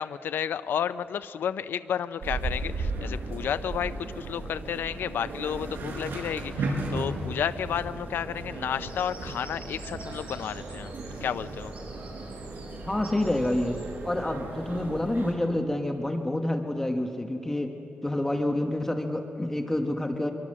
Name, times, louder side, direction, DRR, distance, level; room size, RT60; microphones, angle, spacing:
voice 1, 0.0-10.9 11.2-11.7, left 8 dB, 90° left, 13 dB, 0.5 m, -32 dB
sound 1, 2.2-15.3, right 2 dB, 80° right, 5.1 m, -35 dB
Bird vocalization bird call bird song, 8.8-13.9, right 2 dB, 45° right, 6.8 m, -49 dB
voice 2, 12.8-17.8 18.0-20.3, left 1 dB, 10° left, 5 dB, 1.2 m, -28 dB
24.0 x 23.0 x 7.5 m, 2.8 s
wide cardioid pair, 140°, 3 cm